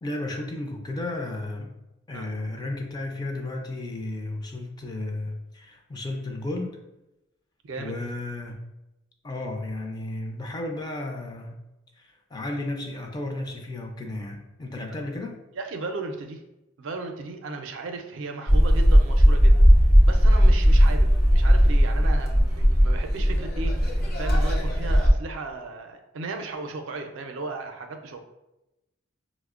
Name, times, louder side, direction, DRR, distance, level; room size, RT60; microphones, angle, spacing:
voice 1, 0.0-1.8 2.1-6.8 7.8-8.6 9.2-11.6 12.0-15.4, left 2 dB, 20° left, 2 dB, 0.3 m, -33 dB
voice 2, 7.6-8.0 15.5-16.4 16.8-19.6 20.1-28.2, right 3 dB, 75° right, 5 dB, 0.4 m, -36 dB
sound 1, 18.5-25.1, equal, 50° left, 0.7 m, -18 dB
4.9 x 2.0 x 2.3 m, 0.95 s
head